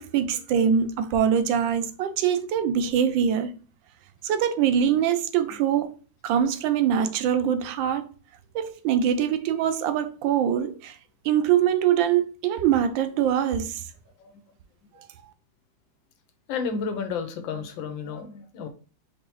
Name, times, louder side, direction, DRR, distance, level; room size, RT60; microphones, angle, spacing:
voice 1, 0.0-3.5 4.2-5.9 6.2-8.1 8.5-11.0 11.2-13.8, right 9 dB, 85° right, 1.3 m, -23 dB
voice 2, 16.5-18.7, left 5 dB, 90° left, 1.5 m, -32 dB
4.7 x 3.4 x 3.0 m
omnidirectional pair, 2.0 m